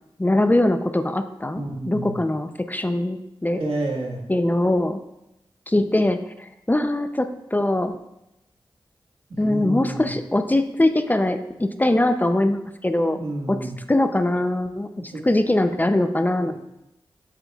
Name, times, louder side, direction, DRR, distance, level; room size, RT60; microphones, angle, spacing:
voice 1, 0.2-3.6 4.3-5.0 5.7-7.9 9.4-13.2 13.5-13.6 13.9-16.5, left 1 dB, 20° left, 8 dB, 0.5 m, -22 dB
voice 2, 1.6-2.2 3.6-4.3 9.3-10.1 13.0-13.8 15.0-15.2 16.4-16.5, right 2 dB, 75° right, -1 dB, 1.5 m, -30 dB
8.2 x 7.4 x 2.4 m, 0.88 s
cardioid pair, 55°, 9 cm